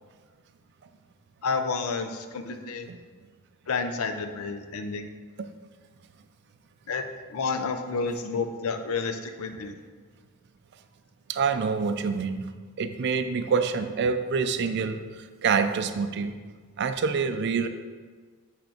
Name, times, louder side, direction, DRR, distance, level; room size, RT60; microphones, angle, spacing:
voice 1, 1.4-2.9 3.7-5.1 6.9-7.0 7.3-9.8, left 4 dB, 80° left, 7 dB, 0.5 m, -30 dB
voice 2, 11.3-12.4 12.8-15.0 15.4-16.3 16.8-17.7, right 5 dB, 50° right, 9 dB, 0.4 m, -26 dB
7.7 x 3.4 x 4.3 m, 1.5 s
head